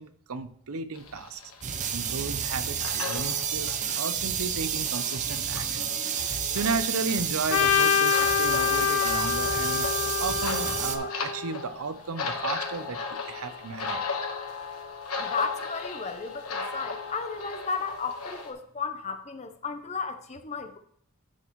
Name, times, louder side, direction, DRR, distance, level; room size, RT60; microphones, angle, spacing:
voice 1, 0.0-1.4 1.9-9.9 10.2-14.0, right 4 dB, 85° right, 11 dB, 0.7 m, -34 dB
sound 1, 0.9-18.5, left 4 dB, 90° left, 1.3 m, -37 dB
sound 2, 1.6-11.0, right 8 dB, 35° right, 0.6 m, -30 dB
Trumpet, 7.5-11.7, left 9 dB, 70° left, 0.5 m, -26 dB
voice 2, 15.2-20.8, left 5 dB, 30° left, 8 dB, 0.7 m, -34 dB
10.5 x 6.1 x 3.1 m, 0.64 s
head